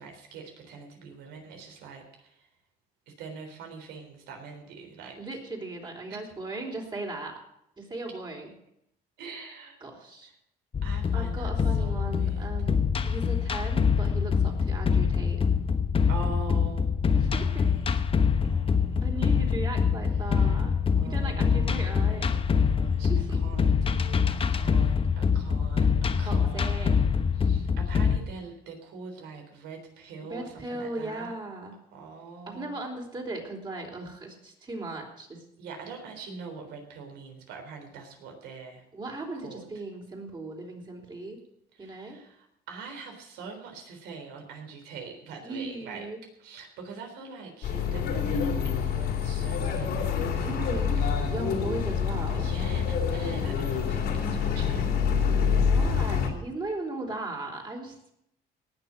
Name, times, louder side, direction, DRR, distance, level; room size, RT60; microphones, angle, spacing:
voice 1, 0.0-2.5 3.1-5.2 6.1-6.2 9.2-9.8 10.8-12.5 16.1-17.8 18.4-19.4 20.1-20.6 20.9-31.3 31.9-32.8 35.6-38.8 39.4-39.7 41.7-46.1 46.4-51.1 52.3-55.0, right 5 dB, 90° right, 3 dB, 3.8 m, -43 dB
voice 2, 5.2-7.4 7.8-8.5 9.8-10.3 11.1-15.4 17.1-17.7 19.0-20.7 21.0-22.3 23.1-23.4 26.2-26.9 30.2-31.8 32.5-35.4 38.9-41.4 41.8-42.2 45.4-46.2 50.4-51.0 51.3-52.5 55.5-57.9, right 2 dB, 25° right, 1 dB, 4.1 m, -37 dB
sound 1, 10.7-28.2, left 6 dB, 35° left, 1.0 m, -25 dB
sound 2, 47.6-56.3, left 6 dB, 70° left, 3.2 m, -26 dB
18.5 x 6.8 x 7.7 m, 0.76 s
cardioid pair, 110°, 17 cm